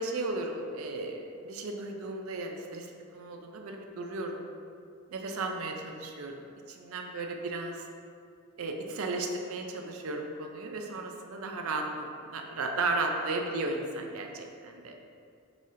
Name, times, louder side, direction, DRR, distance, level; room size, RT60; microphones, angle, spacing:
voice 1, 0.0-4.5 5.1-7.9 8.6-15.0, right 2 dB, 70° right, 3 dB, 0.5 m, -35 dB
4.0 x 2.7 x 4.8 m, 2.4 s
head